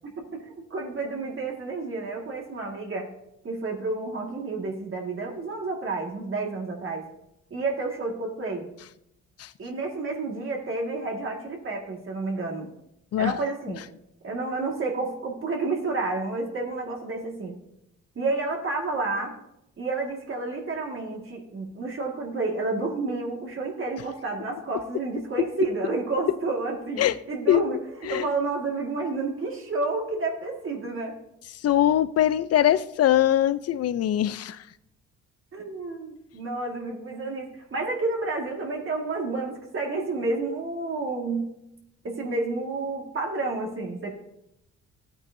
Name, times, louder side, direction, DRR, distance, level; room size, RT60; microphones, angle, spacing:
voice 1, 0.0-3.1 3.4-7.0 7.5-8.7 9.6-12.7 13.2-13.9 14.2-17.6 18.2-19.3 19.8-27.8 28.1-31.1 35.5-41.6 42.0-44.1, right 3 dB, 45° right, 1.9 m, -30 dB
voice 2, 31.6-34.6, left 11 dB, 55° left, 0.5 m, -22 dB
14.0 x 8.8 x 2.6 m
cardioid pair, 90°, 30 cm